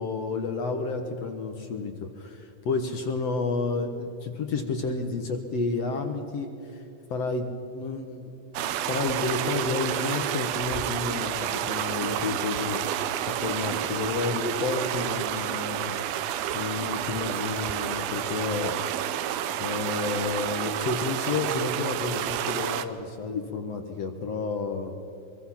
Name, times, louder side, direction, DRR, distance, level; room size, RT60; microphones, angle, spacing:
voice 1, 0.0-6.8 7.1-8.3 8.6-16.0 16.5-18.8 19.6-25.0, left 4 dB, 60° left, 5 dB, 1.8 m, -31 dB
sound 1, 8.6-22.9, right 11 dB, 80° right, 2.7 m, -30 dB
24.5 x 23.0 x 5.8 m, 2.8 s
omnidirectional pair, 4.3 m